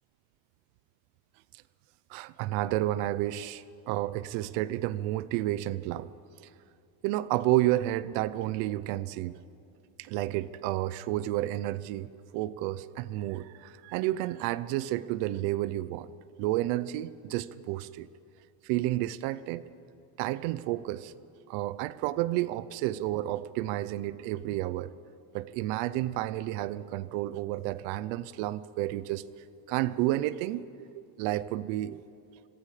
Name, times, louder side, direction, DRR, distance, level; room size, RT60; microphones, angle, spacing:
voice 1, 2.1-6.1 7.0-9.3 10.0-16.1 16.4-18.1 18.6-19.6 20.2-21.1 21.5-24.9 25.3-29.2 29.7-30.6 30.9-32.0, right 15 dB, 85° right, 17 dB, 0.8 m, -31 dB
24.5 x 22.0 x 5.0 m, 2.7 s
cardioid pair, 115°, 46 cm